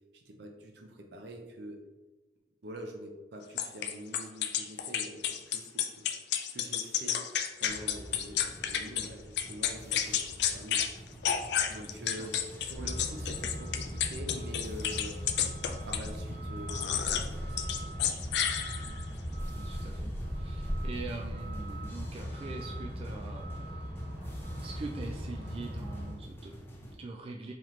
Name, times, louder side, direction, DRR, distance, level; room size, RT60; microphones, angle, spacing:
voice 1, 0.1-1.8 2.6-6.1 6.5-7.2 7.6-10.9 11.7-15.2 15.8-18.0, equal, 65° right, 2 dB, 0.6 m, -45 dB
sound 1, 3.6-9.1 9.4-10.9 11.2-16.1 16.7-17.3 17.6-19.0, left 9 dB, 65° left, 0.4 m, -31 dB
sound 2, 7.7-27.0, equal, 15° left, 0.6 m, -49 dB
voice 2, 11.7-12.3 18.9-19.1 19.5-23.8 24.6-27.5, right 3 dB, 30° right, -1 dB, 0.3 m, -43 dB
Truck, 12.8-26.1, equal, 10° right, 1.2 m, -38 dB
4.0 x 2.9 x 3.1 m, 1.2 s
head